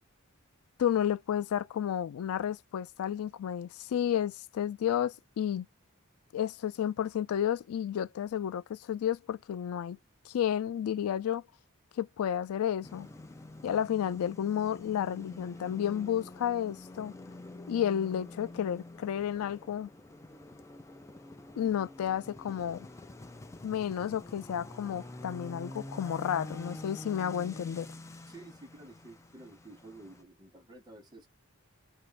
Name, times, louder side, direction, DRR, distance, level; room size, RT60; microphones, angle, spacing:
voice 1, 0.8-5.7 6.3-10.0 10.3-11.4 12.0-13.1 13.6-17.1 17.7-19.9 21.6-22.9 23.6-27.9, left 9 dB, 90° left, 0.3 m, -31 dB
sound 1, 12.8-30.2, left 2 dB, 15° left, 0.3 m, -47 dB
voice 2, 28.3-31.3, right 2 dB, 20° right, 0.8 m, -51 dB
3.0 x 2.5 x 3.2 m
head